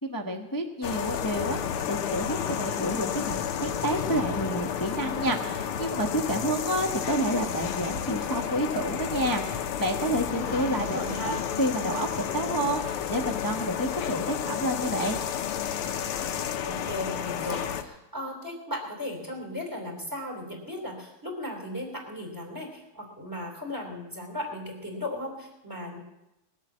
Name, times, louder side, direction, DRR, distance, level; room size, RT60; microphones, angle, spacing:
voice 1, 0.0-1.6 1.9-11.0 11.2-15.2, equal, 15° left, 3 dB, 0.6 m, -29 dB
sound 1, 0.8-17.8, left 8 dB, 80° left, 1.8 m, -31 dB
voice 2, 10.4-11.5 16.6-26.0, left 1 dB, 10° right, 0 dB, 3.2 m, -36 dB
21.0 x 8.3 x 7.4 m, 0.96 s
omnidirectional pair, 2.4 m